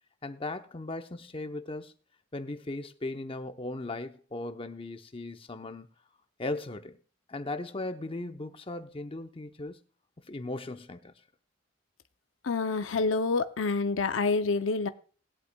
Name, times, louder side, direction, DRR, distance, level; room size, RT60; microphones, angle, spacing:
voice 1, 0.2-1.9 2.3-5.9 6.4-7.0 7.3-9.8 10.3-11.1, left 2 dB, 30° left, 0.8 m, -37 dB
voice 2, 12.4-14.9, left 4 dB, 85° left, 0.6 m, -27 dB
20.5 x 8.2 x 2.2 m
head